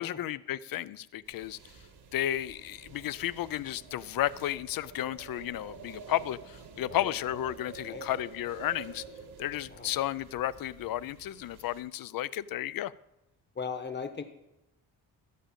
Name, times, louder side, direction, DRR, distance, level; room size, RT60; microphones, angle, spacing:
voice 1, 0.0-1.6 2.1-9.0 9.4-12.9, left 13 dB, 65° left, 17 dB, 0.5 m, -33 dB
sound 1, 1.2-11.8, right 5 dB, 90° right, 1.7 m, -49 dB
voice 2, 13.5-14.2, left 5 dB, 25° left, 7 dB, 1.1 m, -38 dB
14.0 x 5.1 x 8.8 m, 0.93 s
wide cardioid pair, 150°, 38 cm